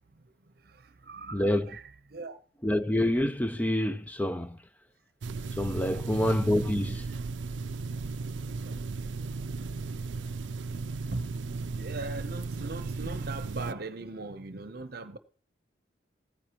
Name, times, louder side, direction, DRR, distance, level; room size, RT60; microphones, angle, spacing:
voice 1, 0.6-2.4 8.6-8.8 11.1-11.3 11.7-15.2, right 3 dB, 55° right, 0.8 m, -40 dB
voice 2, 1.3-1.7 2.6-4.6 5.5-7.1, left 1 dB, 10° left, 0.5 m, -27 dB
sound 1, 5.2-13.7, right 4 dB, 80° right, 0.5 m, -35 dB
16.0 x 9.4 x 3.0 m
head